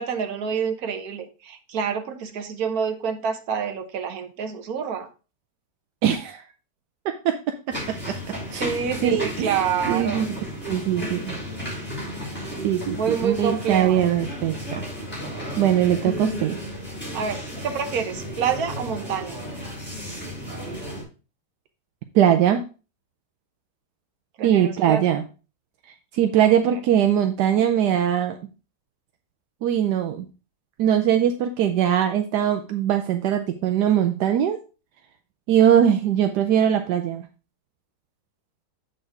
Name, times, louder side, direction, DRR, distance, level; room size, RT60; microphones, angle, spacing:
voice 1, 0.0-5.1 8.6-10.2 12.9-14.0 17.1-19.4 24.4-25.0 26.4-26.8, right 7 dB, 65° right, 7 dB, 1.4 m, -27 dB
voice 2, 6.0-6.4 7.2-7.4 7.9-8.2 8.5-8.7 9.0-9.6 9.9-10.3 10.6-11.4 12.6-14.9 15.6-16.6 22.1-22.6 24.4-25.2 26.1-28.4 29.6-30.3 30.8-34.6 35.5-37.2, right 10 dB, 80° right, 7 dB, 1.2 m, -21 dB
sound 1, 7.7-21.0, equal, 5° left, 4.3 m, -33 dB
7.6 x 4.6 x 4.6 m, 0.33 s
omnidirectional pair, 1.8 m